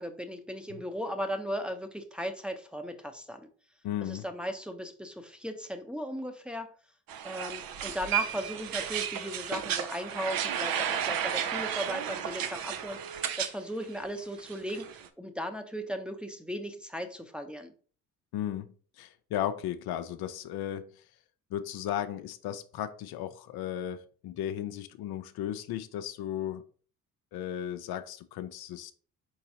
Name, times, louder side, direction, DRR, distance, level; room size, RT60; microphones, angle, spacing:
voice 1, 0.0-3.4 4.0-6.7 7.2-17.7, equal, 5° right, 0.7 m, -37 dB
voice 2, 3.8-4.2 18.3-21.0 21.5-26.6 27.3-28.9, left 11 dB, 70° left, 0.5 m, -35 dB
sound 1, 7.1-13.6 13.8-15.1, right 9 dB, 65° right, 0.6 m, -33 dB
4.6 x 3.9 x 2.8 m
supercardioid pair, 55°, 38 cm